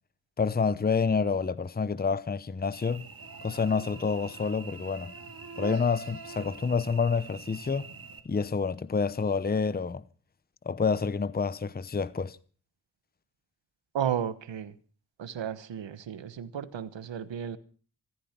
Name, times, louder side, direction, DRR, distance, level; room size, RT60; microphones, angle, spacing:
voice 1, 0.4-3.1 3.4-5.1 5.6-7.9 8.2-10.0 10.7-12.4, left 5 dB, 20° left, 0.8 m, -28 dB
Cricket / Buzz, 2.7-8.2, right 4 dB, 50° right, 2.5 m, -44 dB
voice 2, 13.9-14.7 15.2-17.6, right 9 dB, 85° right, 1.3 m, -33 dB
15.0 x 14.0 x 5.9 m
cardioid pair, 60°, 43 cm